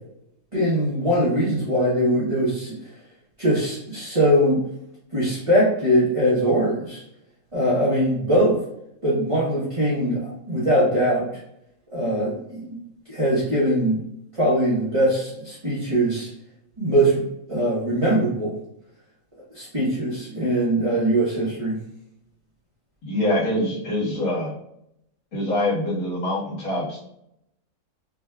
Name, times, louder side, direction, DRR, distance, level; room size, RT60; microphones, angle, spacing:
voice 1, 0.5-2.8 3.4-4.6 5.1-7.0 7.5-8.6 9.0-11.3 11.9-12.8 13.1-14.0 14.3-16.3 16.8-17.2 17.5-18.5 19.5-21.8, equal, 25° right, -9 dB, 1.0 m, -21 dB
voice 2, 23.0-24.5 25.3-27.0, left 1 dB, 80° left, -8 dB, 2.1 m, -24 dB
5.5 x 2.6 x 2.3 m, 0.77 s
omnidirectional pair, 1.5 m